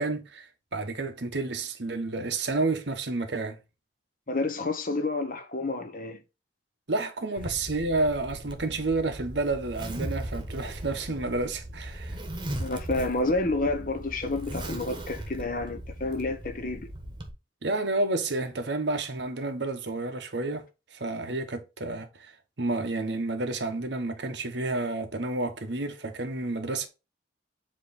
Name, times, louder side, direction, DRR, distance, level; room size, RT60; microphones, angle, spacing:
voice 1, 0.0-3.6 6.9-12.2 17.6-20.6 20.9-22.3 22.6-26.9, right 2 dB, 70° right, 1.1 m, -30 dB
voice 2, 4.3-6.2 12.6-16.9, left 2 dB, 45° left, 0.9 m, -29 dB
Zipper (clothing), 7.4-17.3, right 1 dB, 25° right, 1.2 m, -38 dB
7.5 x 3.1 x 4.1 m
head